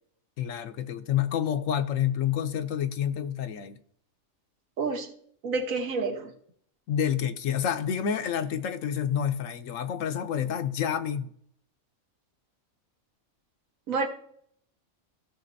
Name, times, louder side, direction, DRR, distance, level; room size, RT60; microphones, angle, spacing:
voice 1, 0.4-3.8 6.9-11.3, left 9 dB, 75° left, 1.0 m, -28 dB
voice 2, 4.8-5.1 5.4-6.3 13.9-14.1, right 4 dB, 75° right, 1.5 m, -29 dB
15.5 x 6.5 x 2.7 m
omnidirectional pair, 1.4 m